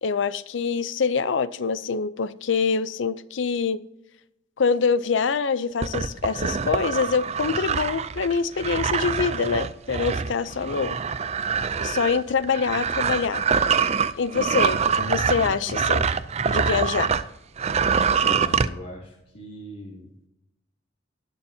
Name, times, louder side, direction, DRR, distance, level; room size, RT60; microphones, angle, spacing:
voice 1, 0.0-3.8 4.6-11.0 11.8-13.4 14.2-16.0 16.4-17.1, left 5 dB, 75° left, 0.5 m, -25 dB
sound 1, 5.8-17.3 17.6-18.7, right 6 dB, 35° right, 0.4 m, -25 dB
voice 2, 18.2-20.1, left 1 dB, 45° left, 2.6 m, -39 dB
19.0 x 7.0 x 2.8 m
head